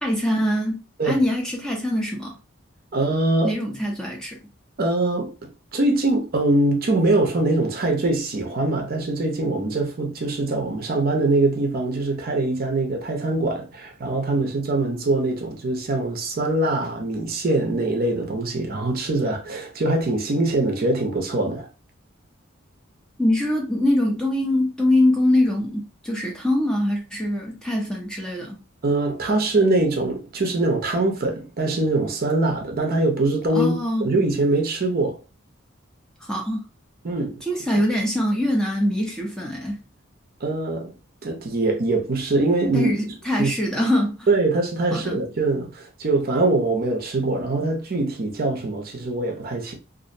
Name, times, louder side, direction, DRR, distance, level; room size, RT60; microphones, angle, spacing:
voice 1, 0.0-2.3 3.4-4.4 23.2-28.6 33.5-34.1 36.2-36.6 37.4-39.8 42.7-44.3 44.9-45.2, left 1 dB, 5° left, 0.5 m, -23 dB
voice 2, 2.9-3.5 4.8-5.3 5.7-21.7 28.8-33.7 34.0-35.2 37.0-37.3 40.4-40.9 41.2-42.9 43.4-43.5 44.3-49.7, right 2 dB, 45° right, 0.5 m, -23 dB
2.4 x 2.0 x 2.6 m
head